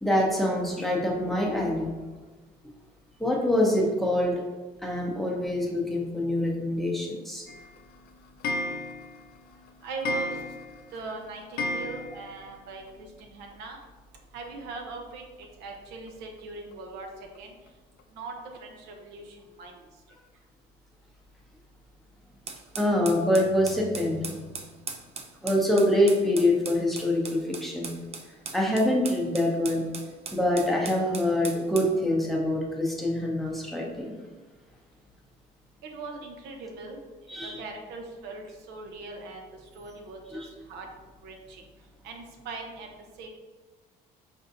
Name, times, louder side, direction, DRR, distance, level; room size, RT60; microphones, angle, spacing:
voice 1, 0.0-1.9 3.2-4.4 4.8-7.4 22.8-24.4 25.4-27.9 28.5-29.8 30.3-34.1 37.3-37.6 40.3-40.5, left 1 dB, ahead, -2 dB, 0.7 m, -25 dB
Clock, 7.5-12.6 12.9-13.0 13.2-13.3 13.5-13.6 14.8-14.9 15.4-15.5 16.1-16.2 16.7-16.8 17.3-17.4 18.0-18.1, left 2 dB, 65° left, 0.4 m, -34 dB
voice 2, 9.8-10.4 10.9-13.8 14.3-15.2 15.6-17.1 17.4-17.5 18.1-19.9 35.9-37.0 37.4-39.5 39.7-40.4 40.7-40.9 41.2-41.6 42.0-42.9 43.2-43.3, right 3 dB, 85° right, 2 dB, 0.6 m, -40 dB
sound 1, 22.5-31.9, right 5 dB, 35° right, 0.4 m, -39 dB
4.3 x 2.6 x 2.6 m, 1.3 s
cardioid pair, 110°, 17 cm